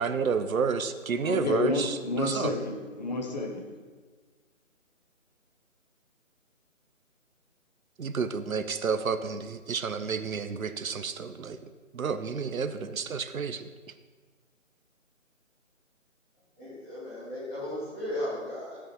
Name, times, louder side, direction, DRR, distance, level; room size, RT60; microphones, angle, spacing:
voice 1, 0.0-2.5 8.0-11.6 11.9-13.7, right 5 dB, 80° right, 11 dB, 0.8 m, -30 dB
voice 2, 1.2-3.6, left 2 dB, 30° left, 1 dB, 1.2 m, -30 dB
voice 3, 16.6-18.8, left 1 dB, 10° left, -11 dB, 2.9 m, -35 dB
13.5 x 8.6 x 3.0 m, 1.4 s
figure-of-eight pair, 165°, 41 cm